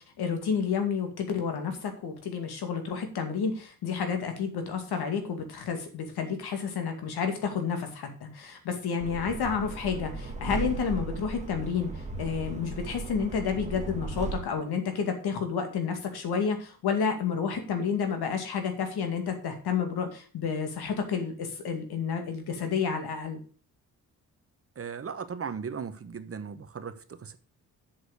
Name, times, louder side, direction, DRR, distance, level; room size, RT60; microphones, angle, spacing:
voice 1, 0.2-23.4, left 6 dB, 90° left, 2.3 m, -30 dB
sound 1, 9.0-14.4, right 3 dB, 20° right, 1.5 m, -36 dB
voice 2, 24.8-27.4, right 6 dB, 40° right, 1.0 m, -37 dB
7.9 x 6.5 x 6.5 m
cardioid pair, 110°, 37 cm